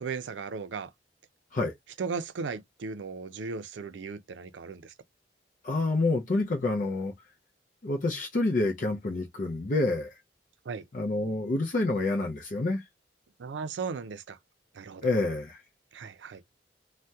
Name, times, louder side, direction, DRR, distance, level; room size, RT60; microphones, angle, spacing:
voice 1, 0.0-0.9 2.0-4.9 10.7-10.8 13.4-14.4 14.8-15.1 15.9-16.4, right 5 dB, 90° right, 0.4 m, -36 dB
voice 2, 5.6-7.1 7.8-10.2 10.9-12.8 15.0-15.6, left 2 dB, 45° left, 0.5 m, -28 dB
2.7 x 2.1 x 3.3 m
head